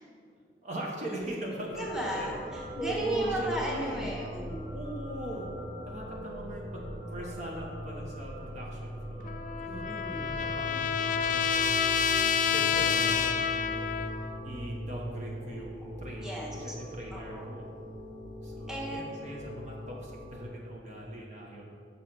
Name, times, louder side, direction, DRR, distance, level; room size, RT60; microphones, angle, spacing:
voice 1, 0.6-2.3 2.8-4.1 4.7-5.5 5.9-11.9 12.5-13.9 14.4-17.7 18.4-21.6, right 1 dB, 40° right, -2 dB, 1.1 m, -39 dB
sound 1, 1.7-20.5, equal, 80° right, 1.8 m, -41 dB
voice 2, 1.8-4.7 9.8-10.3 16.2-16.7 17.1-17.5 18.7-19.0, equal, 5° right, -3 dB, 1.5 m, -36 dB
Trumpet, 9.2-14.4, left 7 dB, 45° left, 0.3 m, -28 dB
7.1 x 5.5 x 5.8 m, 2.3 s
head